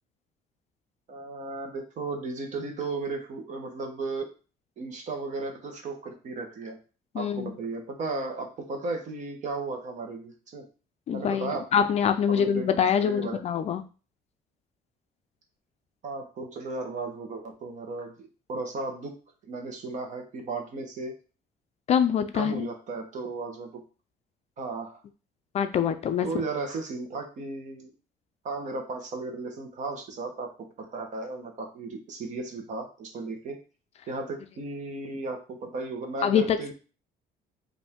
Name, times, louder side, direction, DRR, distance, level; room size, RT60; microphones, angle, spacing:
voice 1, 1.1-4.3 4.8-6.8 7.1-10.7 11.1-11.8 12.3-12.7 13.0-13.4 16.0-19.1 19.4-21.1 22.3-23.8 24.6-25.0 26.2-27.9 28.4-33.6 34.1-36.7, right 3 dB, 50° right, 4 dB, 1.1 m, -35 dB
voice 2, 7.1-7.5 11.1-13.8 21.9-22.7 25.5-26.3 36.2-36.7, left 8 dB, 40° left, 9 dB, 0.4 m, -25 dB
5.0 x 2.6 x 3.6 m, 0.35 s
cardioid pair, 155°, 16 cm